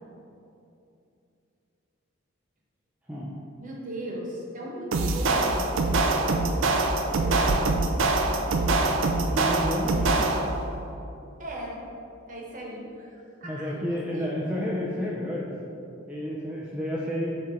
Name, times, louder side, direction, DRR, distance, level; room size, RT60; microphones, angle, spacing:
voice 1, 3.6-7.7 8.2-8.7 11.4-11.8 12.3-14.3, right 1 dB, 40° right, -4 dB, 1.1 m, -38 dB
sound 1, 4.9-10.6, right 2 dB, 60° right, 0.4 m, -24 dB
voice 2, 9.3-10.3 13.4-15.5 16.1-17.4, equal, 5° right, -6 dB, 0.4 m, -30 dB
7.4 x 3.2 x 4.3 m, 2.8 s
head